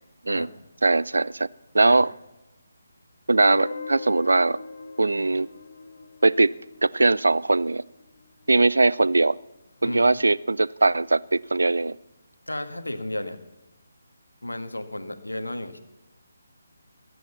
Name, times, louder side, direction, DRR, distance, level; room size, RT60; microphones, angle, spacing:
voice 1, 0.8-1.5 1.7-2.1 3.3-4.6 5.0-5.5 6.2-6.5 6.8-7.8 8.5-9.4 9.8-12.0, right 2 dB, 70° right, 20 dB, 0.4 m, -20 dB
Guitar, 3.4-8.2, left 4 dB, 45° left, 1.4 m, -40 dB
voice 2, 12.5-13.4 14.4-15.8, left 1 dB, 85° left, 9 dB, 1.4 m, -33 dB
20.5 x 7.8 x 7.0 m, 1.0 s
figure-of-eight pair, 150°, 0 cm